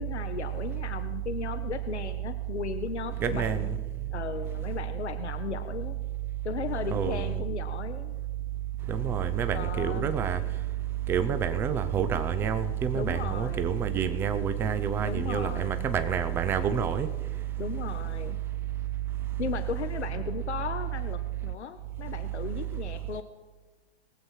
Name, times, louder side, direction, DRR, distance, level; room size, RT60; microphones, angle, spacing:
voice 1, 0.0-3.7 4.1-6.0 6.4-8.1 9.5-10.1 12.9-13.7 15.0-15.9 17.6-18.4 19.4-23.2, left 7 dB, 80° left, 0.9 m, -36 dB
voice 2, 3.2-3.8 6.9-7.3 8.9-10.4 11.1-17.1, right 8 dB, 5° right, 0.4 m, -28 dB
21.0 x 7.7 x 4.5 m
hypercardioid pair, 120°, 33 cm